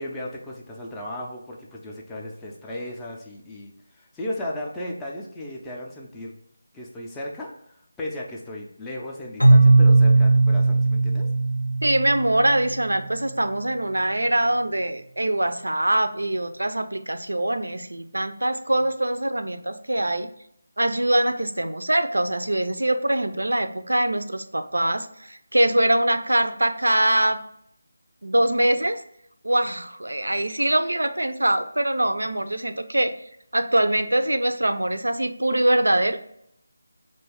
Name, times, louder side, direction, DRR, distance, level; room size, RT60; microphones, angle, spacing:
voice 1, 0.0-6.3 6.7-11.3, left 1 dB, 10° left, -3 dB, 0.4 m, -35 dB
Keyboard (musical), 9.4-13.1, right 3 dB, 90° left, 0.6 m, -18 dB
voice 2, 11.8-20.3 20.8-27.4 28.2-29.0 29.4-33.1 33.5-36.2, right 1 dB, 80° right, 9 dB, 0.3 m, -23 dB
2.5 x 2.2 x 3.4 m, 0.72 s
figure-of-eight pair, 160°, 0 cm